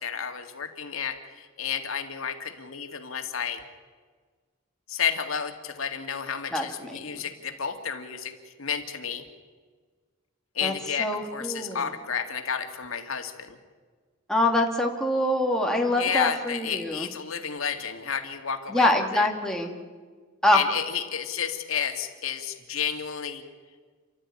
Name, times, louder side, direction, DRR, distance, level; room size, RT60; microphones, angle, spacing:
voice 1, 0.0-3.6 4.9-8.3 8.6-9.2 10.5-13.6 15.9-19.3 20.5-23.4, left 7 dB, 85° left, 5 dB, 2.1 m, -31 dB
voice 2, 6.5-7.2 10.6-10.7 11.0-11.8 14.3-17.1 18.7-19.7 20.4-20.6, left 1 dB, 5° left, 0 dB, 2.4 m, -24 dB
29.0 x 13.0 x 9.8 m, 1.5 s
head